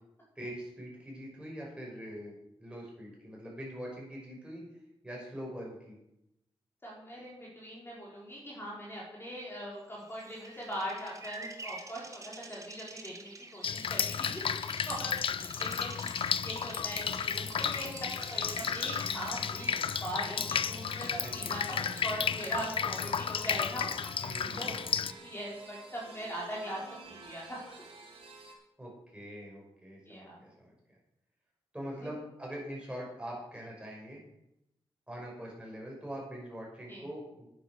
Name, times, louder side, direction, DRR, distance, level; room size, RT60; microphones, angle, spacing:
voice 1, 0.4-4.6 5.0-6.0 21.2-21.6 24.2-25.3 28.8-30.7 31.7-34.2 35.1-37.5, equal, 10° right, -3 dB, 5.7 m, -43 dB
voice 2, 6.8-14.6 14.9-19.7 20.0-24.1 24.6-26.8 27.1-27.8 30.1-30.4 32.0-32.1 36.9-37.0, equal, 25° left, -5 dB, 4.2 m, -41 dB
Bird vocalization bird call bird song, 10.0-22.7, right 3 dB, 35° right, 1.4 m, -49 dB
Drip, 13.6-25.1, left 7 dB, 65° left, 0.5 m, -33 dB
sound 1, 16.8-28.5, right 3 dB, 75° right, 3.8 m, -50 dB
10.0 x 9.4 x 6.5 m, 0.84 s
wide cardioid pair, 105°, 10 cm